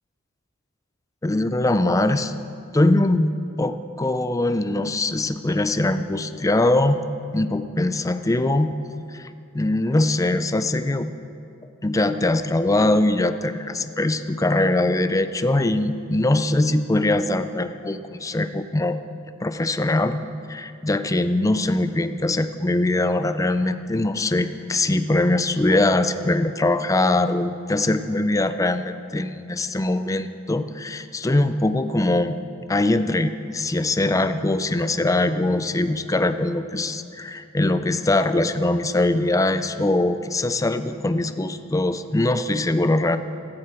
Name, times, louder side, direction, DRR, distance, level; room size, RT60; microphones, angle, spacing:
voice 1, 1.2-2.3 2.7-7.0 7.3-8.8 9.1-9.3 9.5-11.1 11.8-19.0 19.4-20.2 20.5-32.4 32.7-43.2, left 2 dB, 15° left, 10 dB, 0.5 m, -22 dB
16.0 x 13.5 x 4.5 m, 2.5 s
head